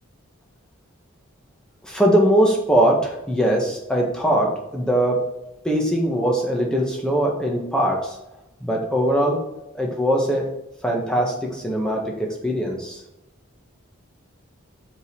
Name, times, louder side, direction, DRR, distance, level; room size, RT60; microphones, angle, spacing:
voice 1, 1.8-5.2 5.6-8.2 8.6-9.4 9.7-10.5 10.8-13.0, right 1 dB, 5° left, -1 dB, 1.5 m, -21 dB
5.9 x 5.4 x 4.8 m, 0.90 s
head